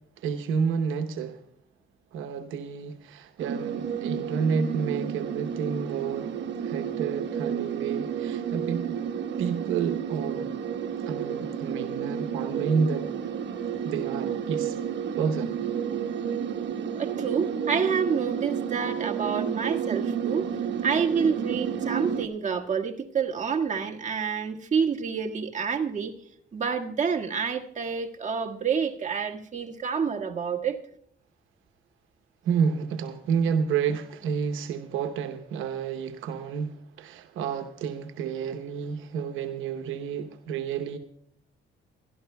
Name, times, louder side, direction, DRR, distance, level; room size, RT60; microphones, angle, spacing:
voice 1, 0.2-1.4 2.1-9.0 9.4-10.5 11.1-13.1 13.8-14.8 15.2-15.6 32.4-41.0, right 6 dB, 85° right, 0.9 m, -30 dB
sound 1, 3.4-22.3, right 8 dB, 65° right, 1.3 m, -31 dB
voice 2, 16.9-20.5 20.8-26.1 26.5-30.8, right 6 dB, 40° right, 1.7 m, -28 dB
26.0 x 12.5 x 2.2 m
cardioid pair, 90°, 20 cm